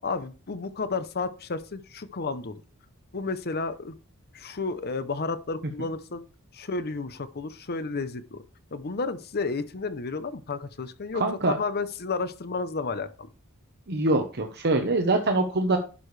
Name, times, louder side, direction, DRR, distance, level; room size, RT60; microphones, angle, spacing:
voice 1, 0.0-2.6 3.1-4.0 4.3-6.2 6.5-8.4 8.7-13.3, left 4 dB, 45° left, 0.8 m, -32 dB
voice 2, 11.1-11.6 13.9-15.8, right 2 dB, 50° right, 1.0 m, -24 dB
11.0 x 6.9 x 3.3 m
head